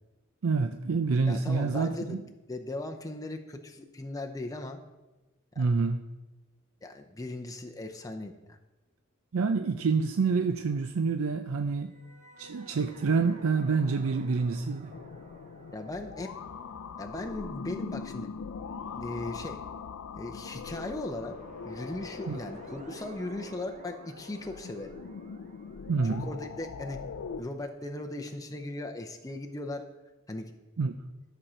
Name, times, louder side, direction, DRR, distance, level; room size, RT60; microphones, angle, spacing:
voice 1, 0.4-2.2 5.6-6.0 9.3-11.9 12.4-14.9 22.3-22.4 25.9-26.3 30.8-30.9, right 4 dB, 75° right, 8 dB, 0.5 m, -27 dB
voice 2, 1.3-4.8 5.6-5.7 6.8-8.6 15.7-16.3 17.0-18.3 18.9-19.6 20.1-21.3 21.6-24.9 26.0-27.0 27.4-29.8 30.3-30.5, left 2 dB, 15° left, 3 dB, 0.6 m, -38 dB
sound 1, 11.8-19.1 20.9-28.7, right 2 dB, 35° right, 0.9 m, -54 dB
sound 2, 14.9-27.4, left 5 dB, 75° left, 0.4 m, -42 dB
12.5 x 6.2 x 4.3 m, 1.1 s
head